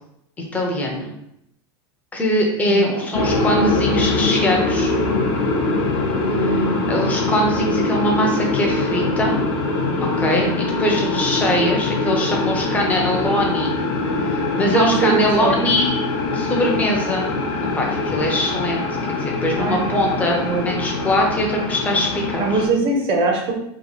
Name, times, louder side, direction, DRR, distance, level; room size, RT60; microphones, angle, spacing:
voice 1, 0.5-1.1 2.1-4.9 6.3-6.6 6.9-9.4 10.2-13.7 14.2-15.9 16.3-17.3 17.7-18.9 19.2-22.6, left 1 dB, 10° left, 0 dB, 0.6 m, -22 dB
voice 2, 2.7-3.1 6.2-7.0 14.7-15.6 19.5-20.0 20.3-20.7 22.4-23.5, right 3 dB, 40° right, 1 dB, 0.7 m, -22 dB
sound 1, 3.1-22.7, left 2 dB, 50° left, 0.6 m, -23 dB
2.9 x 2.1 x 4.2 m, 0.79 s
supercardioid pair, 145°, 14 cm